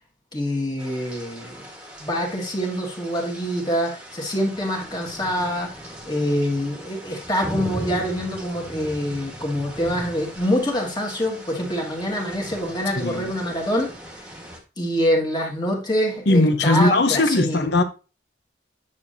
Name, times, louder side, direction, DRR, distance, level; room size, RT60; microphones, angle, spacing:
voice 1, 0.3-1.6 2.0-5.7 6.1-13.9 14.8-17.7, equal, 20° left, 1.8 m, -25 dB
sound 1, 0.8-14.6, right 1 dB, 5° right, 1.5 m, -38 dB
voice 2, 13.0-13.3 16.3-17.8, left 2 dB, 60° left, 0.8 m, -19 dB
9.5 x 6.2 x 2.7 m
head